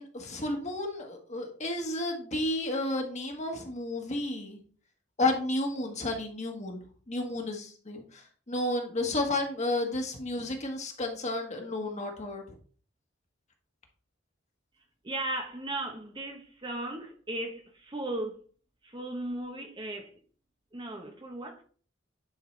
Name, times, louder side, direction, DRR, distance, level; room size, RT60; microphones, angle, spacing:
voice 1, 0.0-4.6 5.2-6.8 7.1-12.4, left 2 dB, 35° left, 1.6 m, -32 dB
voice 2, 15.0-18.4 18.8-20.1 20.7-21.6, right 1 dB, 25° right, 1.0 m, -36 dB
10.5 x 5.7 x 3.3 m
head